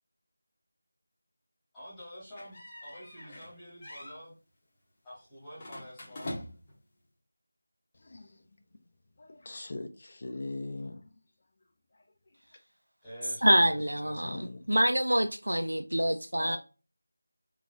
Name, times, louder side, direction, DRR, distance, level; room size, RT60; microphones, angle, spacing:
voice 1, 1.7-4.4 5.0-6.4 13.0-14.3 16.1-16.6, equal, 5° left, 1.5 m, -48 dB
sound 1, 2.4-3.5 3.8-4.2 5.6-6.8, left 1 dB, 20° left, 0.9 m, -43 dB
voice 2, 7.9-8.6 9.2-11.1 11.9-12.0 14.1-14.7, left 2 dB, 40° left, 0.5 m, -41 dB
voice 3, 13.4-16.6, right 1 dB, 80° right, 0.3 m, -26 dB
3.7 x 2.9 x 2.5 m
figure-of-eight pair, 170°, 0 cm